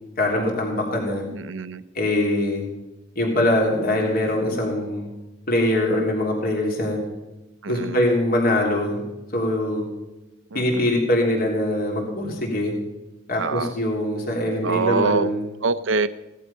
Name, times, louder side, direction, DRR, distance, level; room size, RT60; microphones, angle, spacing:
voice 1, 0.2-1.3 1.9-2.7 3.1-5.1 5.5-7.0 7.7-9.0 9.3-9.8 10.5-12.7 13.3-15.4, left 1 dB, 50° left, -1 dB, 3.4 m, -23 dB
voice 2, 1.3-1.8 7.6-8.0 10.5-10.9 13.4-13.7 14.6-15.3 15.6-16.1, right 4 dB, 75° right, 13 dB, 0.7 m, -25 dB
17.5 x 12.0 x 5.6 m, 1.0 s
head